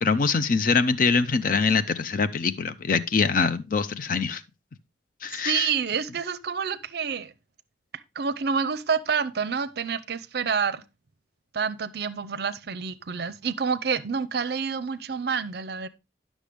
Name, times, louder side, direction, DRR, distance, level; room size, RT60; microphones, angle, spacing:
voice 1, 0.0-4.4 5.2-5.7, left 5 dB, 45° left, 0.5 m, -24 dB
voice 2, 5.3-7.3 8.2-10.8 11.5-15.9, right 6 dB, 60° right, 0.5 m, -28 dB
9.9 x 6.3 x 3.4 m
head